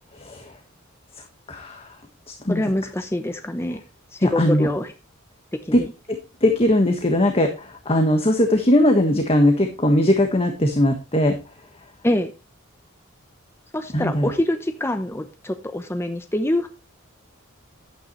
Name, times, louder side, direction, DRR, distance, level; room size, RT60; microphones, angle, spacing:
voice 1, 0.1-0.5 1.1-2.0 2.4-2.6 4.2-4.7 5.7-5.8 6.1-11.5 13.9-14.3, left 1 dB, 30° left, 4 dB, 1.5 m, -20 dB
voice 2, 2.5-3.8 4.1-4.9 5.7-5.9 12.0-12.3 13.7-16.7, left 1 dB, 10° left, 7 dB, 0.9 m, -25 dB
12.0 x 9.2 x 3.1 m, 0.28 s
head